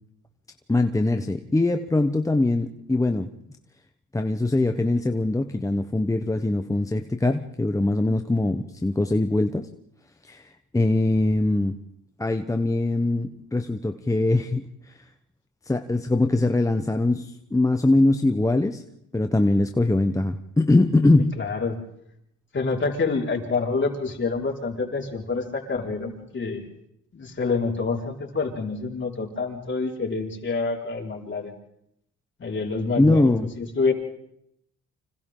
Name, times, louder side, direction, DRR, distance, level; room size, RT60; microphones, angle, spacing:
voice 1, 0.7-3.3 4.1-9.7 10.3-11.8 12.2-14.9 15.7-18.8 19.1-21.4 33.0-33.5, left 2 dB, 10° left, 7 dB, 1.0 m, -22 dB
voice 2, 21.2-21.8 22.5-26.7 27.1-31.5 32.4-33.9, left 4 dB, 40° left, 0 dB, 4.9 m, -27 dB
30.0 x 26.0 x 3.8 m, 0.74 s
cardioid pair, 90°, 30 cm